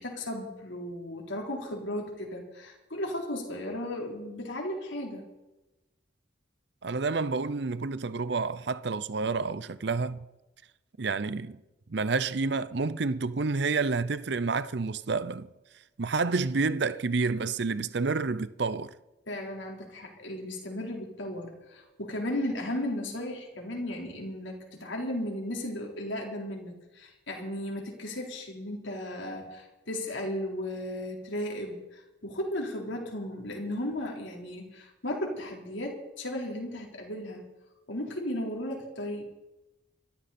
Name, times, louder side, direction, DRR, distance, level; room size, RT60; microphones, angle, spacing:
voice 1, 0.0-5.3 19.3-37.5 37.9-39.2, left 1 dB, 75° left, 4.1 m, -35 dB
voice 2, 6.8-10.2 11.0-11.6 11.9-15.5 16.0-18.9, right 4 dB, 60° right, 0.6 m, -29 dB
24.5 x 13.5 x 4.3 m
head